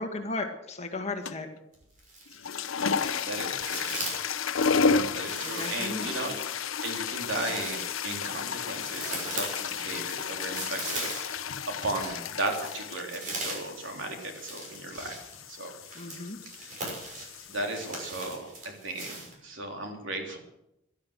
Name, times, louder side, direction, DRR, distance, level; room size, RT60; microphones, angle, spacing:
voice 1, 0.0-1.5 5.4-6.1 15.9-16.4, left 2 dB, 35° left, 4 dB, 2.0 m, -35 dB
sound 1, 1.3-1.6 2.3-18.1, left 5 dB, 85° left, 0.8 m, -32 dB
sound 2, 1.7-2.6 2.9-4.4 5.2-11.5 11.9-19.3, right 2 dB, 40° right, 6.5 m, -39 dB
sound 3, 3.0-3.3 6.0-6.3 9.0-9.3 12.0-12.3, equal, 20° right, 6.9 m, -45 dB
voice 2, 3.2-4.2 5.1-6.4 6.8-11.5 11.8-15.1 15.5-15.7 17.5-18.5 18.8-20.4, right 2 dB, 65° right, 2 dB, 3.5 m, -36 dB
17.0 x 12.5 x 6.5 m, 0.83 s
head